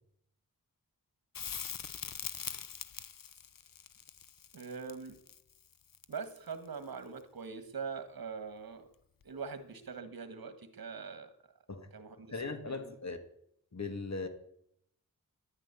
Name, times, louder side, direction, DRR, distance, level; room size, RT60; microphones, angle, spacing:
Crackle, 1.3-6.5 9.2-9.3, left 7 dB, 65° left, 0.9 m, -43 dB
voice 1, 4.5-5.2 6.1-8.9 9.2-11.3 11.9-12.3 12.6-12.8, right 5 dB, 80° right, 1.7 m, -42 dB
voice 2, 12.3-13.2 13.7-14.3, left 3 dB, 50° left, 2.4 m, -38 dB
11.5 x 9.9 x 9.8 m
wide cardioid pair, 65°, 35 cm